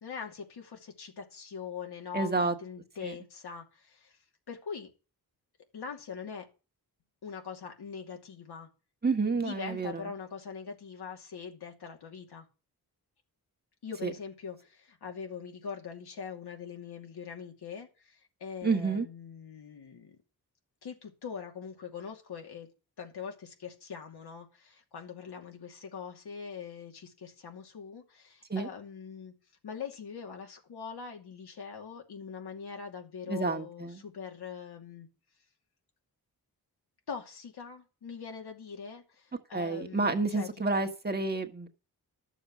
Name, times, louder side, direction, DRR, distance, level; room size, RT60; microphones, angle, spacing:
voice 1, 0.0-4.2 4.5-4.9 5.7-6.5 7.2-8.7 9.3-12.5 13.8-20.2 20.8-22.7 23.0-29.3 29.6-35.1 37.1-40.9, left 6 dB, 80° left, 2.6 m, -42 dB
voice 2, 2.1-2.5 3.0-3.1 9.0-10.1 14.0-14.1 18.6-19.1 28.5-28.7 33.3-34.0 39.5-41.7, right 3 dB, 25° right, 1.4 m, -29 dB
12.0 x 7.0 x 6.1 m
wide cardioid pair, 110°, 38 cm